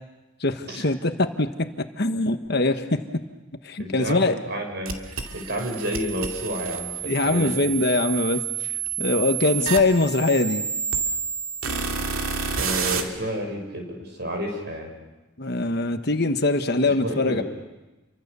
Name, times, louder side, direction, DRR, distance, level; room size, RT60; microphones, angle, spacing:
voice 1, 0.4-3.0 3.6-4.4 7.0-8.4 9.0-10.6 15.4-17.4, left 2 dB, 50° left, 7 dB, 1.3 m, -22 dB
voice 2, 3.8-7.6 12.4-14.9 16.8-17.4, equal, 50° right, 2 dB, 6.6 m, -31 dB
sound 1, 4.9-13.0, right 6 dB, 75° right, 2.4 m, -29 dB
29.5 x 24.5 x 6.9 m, 1.1 s
head